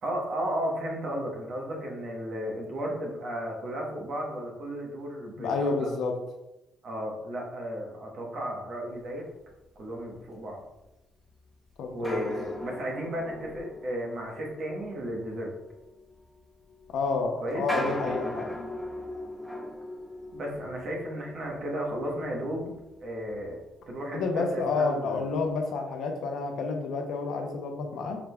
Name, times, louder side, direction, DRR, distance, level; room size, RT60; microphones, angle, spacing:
voice 1, 0.0-5.9 6.8-9.2 9.8-10.6 11.9-15.5 17.4-17.6 20.3-22.7 23.0-23.6 23.9-25.2, equal, 55° right, -1 dB, 1.0 m, -34 dB
voice 2, 5.4-6.1 11.8-12.2 16.9-18.5 24.1-28.2, left 4 dB, 80° left, 3 dB, 0.6 m, -29 dB
sound 1, 10.7-10.8 12.0-24.0 24.3-24.4 25.0-25.2, left 1 dB, 10° right, 0.8 m, -39 dB
4.8 x 3.3 x 2.3 m, 0.95 s
cardioid pair, 120°, 0 cm